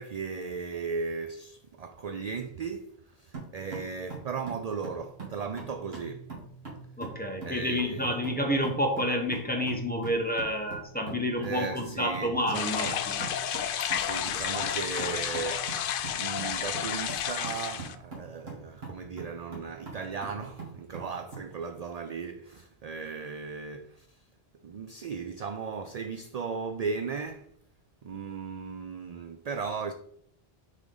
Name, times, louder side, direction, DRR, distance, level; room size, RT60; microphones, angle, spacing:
voice 1, 0.0-6.3 7.4-8.3 11.4-13.0 13.8-24.2 24.6-27.5 28.0-29.9, right 5 dB, 55° right, 0.5 m, -36 dB
sound 1, 3.3-21.5, right 4 dB, 80° right, 2.6 m, -44 dB
voice 2, 7.0-13.3, equal, 10° left, 0.9 m, -29 dB
sound 2, 12.5-18.0, left 9 dB, 65° left, 0.7 m, -31 dB
6.5 x 5.0 x 3.9 m
omnidirectional pair, 1.0 m